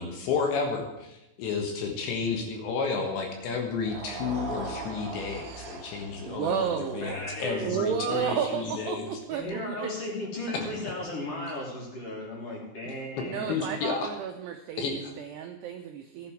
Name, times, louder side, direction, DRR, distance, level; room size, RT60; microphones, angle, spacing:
voice 1, 0.0-9.2 13.5-14.1 14.8-15.1, left 5 dB, 70° left, 3 dB, 3.3 m, -31 dB
sound 1, 3.7-10.0, right 3 dB, 60° right, 3.5 m, -42 dB
voice 2, 6.3-7.2 7.6-9.9 13.2-16.3, right 8 dB, 90° right, 5 dB, 2.3 m, -32 dB
voice 3, 7.0-7.8 8.0-13.8, left 1 dB, 30° left, -4 dB, 4.2 m, -36 dB
15.5 x 11.0 x 4.7 m, 0.91 s
omnidirectional pair, 5.9 m